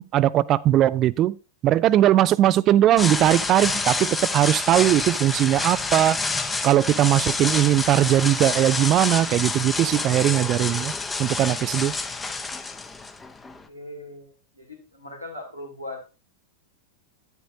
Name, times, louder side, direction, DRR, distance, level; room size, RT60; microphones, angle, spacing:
voice 1, 0.0-1.4 1.6-6.2 6.6-10.9 11.2-11.9, right 13 dB, 35° right, 0.4 m, -20 dB
sound 1, 3.0-13.6, left 3 dB, 10° left, 0.8 m, -28 dB
voice 2, 13.7-16.1, left 1 dB, 90° left, 2.5 m, -39 dB
10.0 x 8.1 x 2.7 m
figure-of-eight pair, 90°, 0 cm